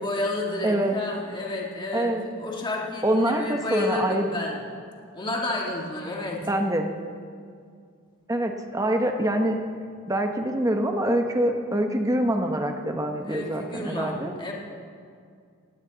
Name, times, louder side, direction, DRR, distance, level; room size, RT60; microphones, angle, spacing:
voice 1, 0.0-4.6 5.1-6.5 13.2-14.5, left 2 dB, 20° left, -2 dB, 1.8 m, -31 dB
voice 2, 0.6-1.0 1.9-2.2 3.0-4.3 6.4-6.9 8.3-9.6 10.1-14.3, right 1 dB, 15° right, 4 dB, 1.0 m, -25 dB
18.5 x 16.5 x 4.0 m, 2.2 s
head